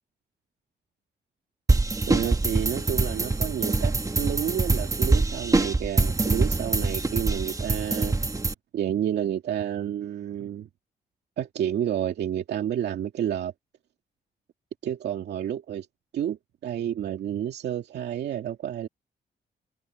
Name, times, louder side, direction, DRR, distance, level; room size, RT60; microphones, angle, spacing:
sound 1, 1.7-8.5, right 3 dB, 20° right, 1.3 m, -24 dB
voice 1, 2.1-8.2 8.7-10.7 11.4-13.5 14.8-15.9 16.1-18.9, right 10 dB, 85° right, 2.3 m, -30 dB
cardioid pair, 95°, 17 cm